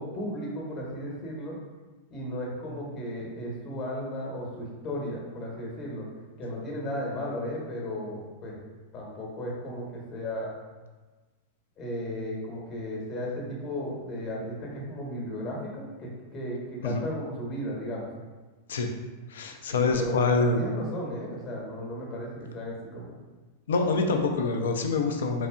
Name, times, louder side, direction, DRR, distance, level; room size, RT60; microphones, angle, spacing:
voice 1, 0.0-1.6 2.1-6.0 6.4-8.6 8.9-10.5 11.8-18.1 19.7-23.2, equal, 35° left, -2 dB, 0.9 m, -35 dB
voice 2, 19.3-20.6 23.7-25.5, left 4 dB, 65° left, 4 dB, 0.4 m, -25 dB
3.9 x 2.7 x 2.3 m, 1.3 s
figure-of-eight pair, 90°, 0 cm